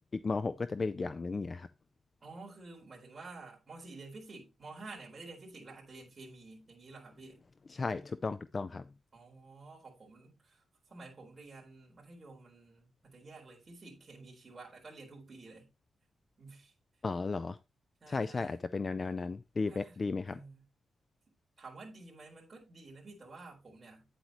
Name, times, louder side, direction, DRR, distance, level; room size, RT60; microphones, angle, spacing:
voice 1, 0.2-1.7 7.7-8.8 17.0-17.6 18.1-20.4, left 4 dB, 25° left, 0.3 m, -34 dB
voice 2, 2.2-7.4 9.1-15.7 16.4-16.7 18.0-18.6 19.7-20.6 21.6-24.1, right 3 dB, 25° right, 4.1 m, -51 dB
9.1 x 8.0 x 3.0 m
wide cardioid pair, 170°, 0 cm